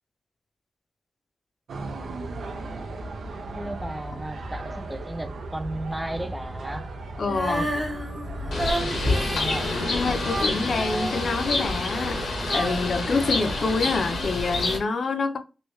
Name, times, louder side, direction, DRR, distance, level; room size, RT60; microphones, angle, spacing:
sound 1, 1.7-13.7, right 2 dB, 85° right, 0.6 m, -36 dB
voice 1, 3.5-6.9 7.5-7.9 8.4-9.7, right 1 dB, 5° right, 0.4 m, -35 dB
voice 2, 7.2-7.7 9.9-15.4, left 4 dB, 50° left, 0.5 m, -27 dB
Female singing, 7.2-14.3, equal, 25° right, 1.0 m, -31 dB
Bird, 8.5-14.8, left 2 dB, 85° left, 1.0 m, -28 dB
3.1 x 2.6 x 3.0 m
wide cardioid pair, 165°, 0 cm